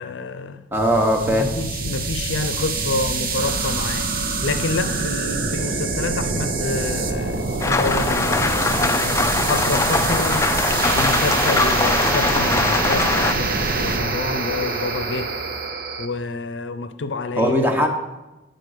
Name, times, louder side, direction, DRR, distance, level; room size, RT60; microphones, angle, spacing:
voice 1, 0.0-0.6 1.2-4.1 4.4-8.9 9.5-10.5 10.9-15.3 16.0-17.5, left 3 dB, 90° left, 0.5 m, -28 dB
voice 2, 0.7-1.5 17.4-17.9, equal, 10° right, 0.9 m, -19 dB
sound 1, 0.7-16.1, right 3 dB, 55° right, 0.8 m, -25 dB
Rain, 7.6-13.3, left 3 dB, 15° left, 0.3 m, -21 dB
8.3 x 3.9 x 6.6 m
head